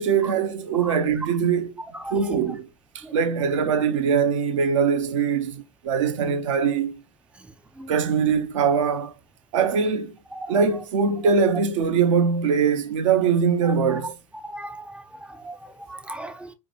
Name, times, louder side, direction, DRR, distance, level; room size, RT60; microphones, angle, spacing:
voice 1, 0.0-1.7 2.1-2.7 2.9-7.0 7.9-9.1 9.5-10.2 10.5-14.2, right 6 dB, 65° right, 0.6 m, -22 dB
voice 2, 14.4-15.0 15.4-15.6 15.9-16.5, right 1 dB, 5° right, 0.4 m, -36 dB
4.7 x 2.2 x 2.7 m
figure-of-eight pair, 85°, 18 cm